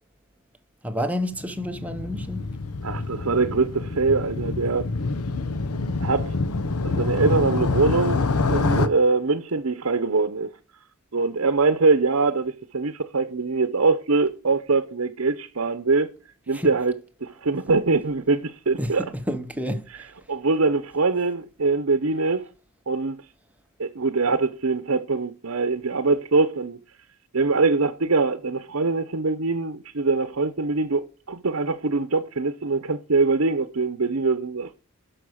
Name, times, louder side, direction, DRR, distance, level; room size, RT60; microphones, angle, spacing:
voice 1, 0.8-2.5 16.5-16.7 18.8-20.1, equal, 5° right, 1.0 m, -29 dB
Motorcycle, 1.3-8.9, left 3 dB, 90° left, 1.0 m, -26 dB
voice 2, 2.8-4.9 6.0-6.4 6.8-10.5 11.1-16.1 16.5-19.1 20.3-22.5 22.9-23.2 23.8-26.8 27.3-34.7, right 3 dB, 65° right, 0.8 m, -23 dB
11.5 x 6.4 x 6.3 m
head